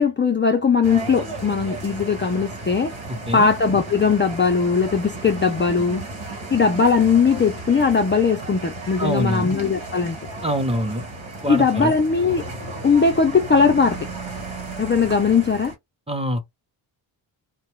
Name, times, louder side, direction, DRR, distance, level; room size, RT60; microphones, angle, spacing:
voice 1, 0.0-2.9 3.3-6.0 6.5-10.2 11.5-12.4 12.8-14.1 14.8-15.7, left 5 dB, 25° left, 0.5 m, -19 dB
sound 1, 0.8-15.7, right 2 dB, 75° right, 1.4 m, -34 dB
voice 2, 9.0-9.5 10.4-11.0 11.4-11.9 16.1-16.4, equal, 10° right, 0.8 m, -24 dB
2.5 x 2.3 x 3.1 m
cardioid pair, 75°, 48 cm